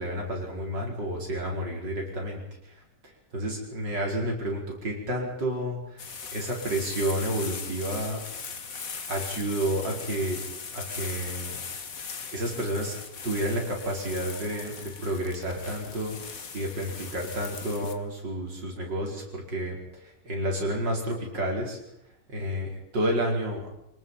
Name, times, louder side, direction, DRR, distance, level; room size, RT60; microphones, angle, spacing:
voice 1, 0.0-2.4 3.3-8.2 9.1-10.4 10.7-11.6 12.3-12.9 13.2-21.8 22.3-23.7, right 1 dB, 85° right, 0 dB, 5.6 m, -30 dB
sound 1, 6.0-18.0, left 5 dB, 50° left, 1.9 m, -39 dB
27.0 x 19.5 x 5.7 m, 0.82 s
omnidirectional pair, 1.9 m